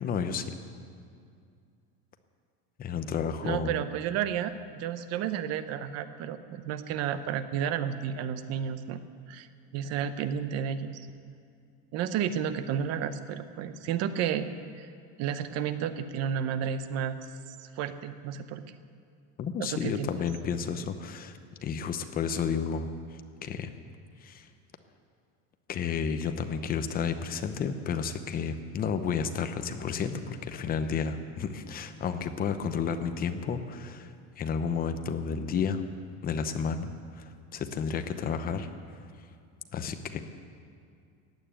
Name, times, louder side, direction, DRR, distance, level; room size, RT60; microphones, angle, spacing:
voice 1, 0.0-0.4 2.8-3.7 19.4-22.9 23.4-23.7 24.2-24.5 25.7-35.8 36.2-38.7 39.7-40.2, left 6 dB, 25° left, 8 dB, 0.8 m, -31 dB
voice 2, 3.4-9.0 9.3-9.5 9.7-11.1 11.9-14.9 15.2-17.2 17.5-18.6 19.6-20.1, right 8 dB, 50° right, 11 dB, 0.8 m, -32 dB
15.5 x 9.3 x 8.9 m, 2.3 s
cardioid pair, 165°, 33 cm